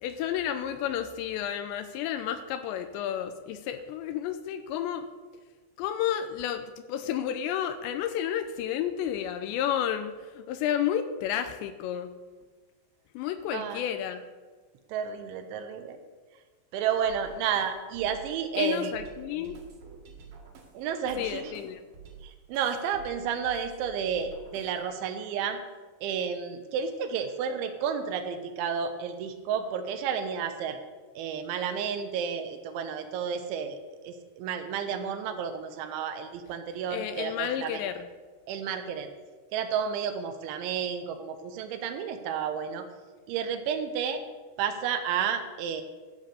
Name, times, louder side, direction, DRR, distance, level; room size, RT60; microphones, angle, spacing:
voice 1, 0.0-5.1 5.8-12.1 13.1-14.3 18.6-19.6 21.2-21.8 36.9-38.1, left 10 dB, 80° left, 9 dB, 2.7 m, -31 dB
voice 2, 13.5-13.8 14.9-16.0 16.7-18.9 20.7-21.5 22.2-25.6 26.0-30.8 31.2-33.8 34.0-37.8 38.5-39.1 39.5-42.8 43.3-44.2 44.6-45.8, right 7 dB, 85° right, 7 dB, 3.4 m, -31 dB
sound 1, 17.1-25.0, right 5 dB, 60° right, 3.3 m, -50 dB
12.5 x 7.4 x 6.7 m, 1.4 s
omnidirectional pair, 5.3 m